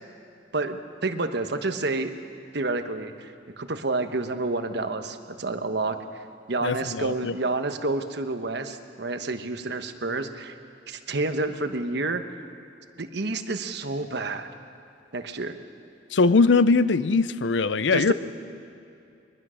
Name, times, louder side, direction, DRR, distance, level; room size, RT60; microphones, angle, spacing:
voice 1, 0.5-2.1 2.5-6.0 6.5-10.6 10.9-12.2 13.0-14.5 15.1-15.6 17.9-18.1, right 3 dB, 65° right, 8 dB, 1.2 m, -29 dB
voice 2, 6.6-7.3 16.1-18.1, left 4 dB, 80° left, 16 dB, 0.6 m, -21 dB
22.0 x 21.0 x 6.4 m, 2.5 s
head